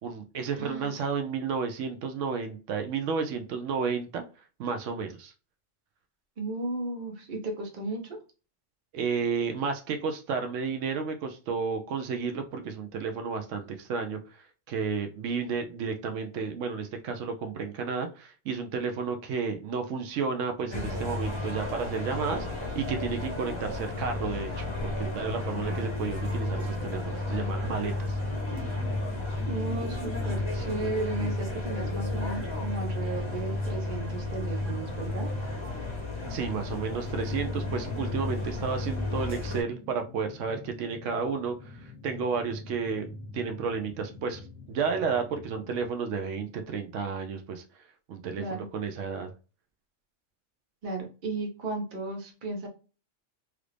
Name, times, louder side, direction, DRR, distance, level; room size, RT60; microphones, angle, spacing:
voice 1, 0.0-4.2 4.6-5.3 8.9-28.2 36.3-44.4 44.7-47.6 48.1-49.3, right 5 dB, 85° right, 6 dB, 0.9 m, -32 dB
voice 2, 0.6-1.0 6.4-8.2 29.5-35.3 48.4-48.7 50.8-52.7, right 2 dB, 45° right, 2 dB, 0.9 m, -35 dB
sound 1, 20.7-39.6, left 2 dB, 30° left, 0.6 m, -32 dB
sound 2, 37.3-45.9, left 2 dB, 5° right, 1.1 m, -47 dB
3.2 x 2.5 x 3.2 m, 0.34 s
omnidirectional pair, 1.2 m